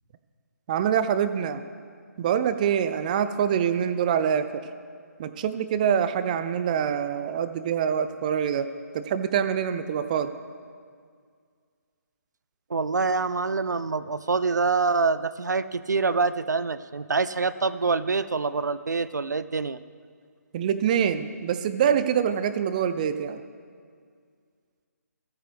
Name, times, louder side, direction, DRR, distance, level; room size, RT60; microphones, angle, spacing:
voice 1, 0.7-1.6 2.2-4.5 5.2-8.7 8.9-10.3 20.5-23.4, right 8 dB, 25° right, 11 dB, 0.4 m, -25 dB
voice 2, 12.7-19.8, right 4 dB, 85° right, 15 dB, 0.4 m, -25 dB
15.0 x 9.1 x 3.5 m, 2.1 s
figure-of-eight pair, 145°, 9 cm